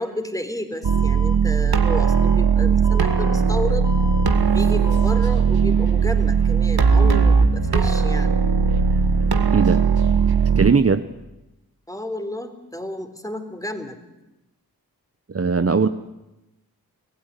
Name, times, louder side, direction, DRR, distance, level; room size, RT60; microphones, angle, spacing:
voice 1, 0.0-3.9 4.5-8.4 11.9-14.0, left 1 dB, 10° left, 8 dB, 3.7 m, -31 dB
Alarm, 0.8-1.3 1.8-2.3 2.8-3.3 3.8-4.3 4.8-5.3, left 3 dB, 50° left, 3.7 m, -36 dB
sound 1, 0.8-10.7, right 5 dB, 75° right, 1.8 m, -18 dB
voice 2, 9.5-9.8 10.6-11.0 15.3-15.9, right 5 dB, 40° right, 10 dB, 1.0 m, -19 dB
24.0 x 16.0 x 9.9 m, 0.98 s
cardioid pair, 40°, 38 cm